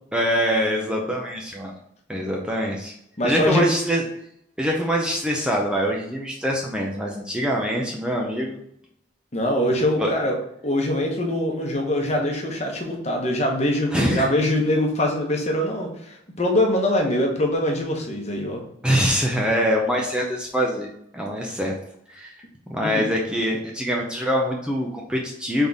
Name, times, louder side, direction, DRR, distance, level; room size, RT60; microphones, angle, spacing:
voice 1, 0.1-1.7 2.1-2.9 3.2-4.0 4.6-8.6 10.0-10.1 13.9-14.3 18.8-20.9 21.1-21.7 22.1-22.4 22.7-25.7, equal, 5° right, -1 dB, 0.5 m, -24 dB
voice 2, 3.2-3.6 9.3-10.4 10.6-18.6 22.8-23.1, left 1 dB, 35° left, 1 dB, 0.9 m, -23 dB
4.0 x 3.5 x 3.5 m, 0.73 s
head